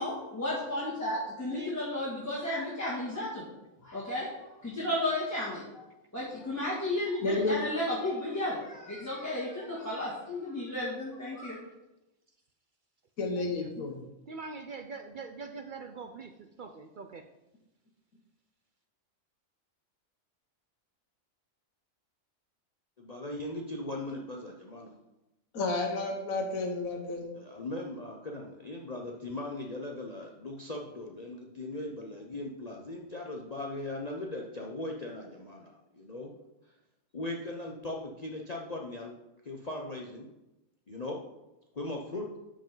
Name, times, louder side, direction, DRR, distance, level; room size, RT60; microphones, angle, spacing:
voice 1, 0.0-3.5 3.8-5.8 6.1-11.6, left 1 dB, 10° left, -8 dB, 2.0 m, -33 dB
voice 2, 7.2-7.6 13.2-14.0 25.5-27.3, left 3 dB, 80° left, 3 dB, 1.6 m, -31 dB
voice 3, 13.4-13.7 14.3-17.3, right 4 dB, 65° right, 7 dB, 0.5 m, -43 dB
voice 4, 23.0-25.0 27.4-36.3 37.1-39.1 39.4-40.3 40.9-41.2 41.7-42.3, left 2 dB, 35° left, 0 dB, 0.8 m, -39 dB
12.5 x 5.2 x 3.8 m, 0.95 s
omnidirectional pair, 1.4 m